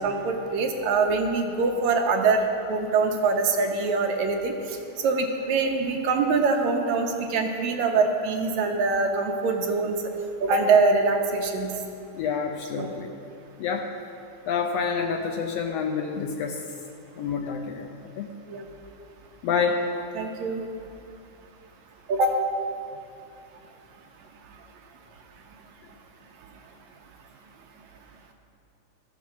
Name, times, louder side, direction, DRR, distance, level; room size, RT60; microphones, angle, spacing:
voice 1, 0.0-2.4 2.7-4.8 5.0-10.0 10.4-11.8 12.8-12.9 18.5-18.7 20.2-20.6 22.1-22.4, right 4 dB, 75° right, 3 dB, 2.2 m, -24 dB
voice 2, 12.1-13.1 13.6-13.9 14.5-16.6 17.2-18.3 19.4-19.9, left 6 dB, 75° left, 3 dB, 1.5 m, -28 dB
14.0 x 6.1 x 6.9 m, 2.6 s
omnidirectional pair, 3.4 m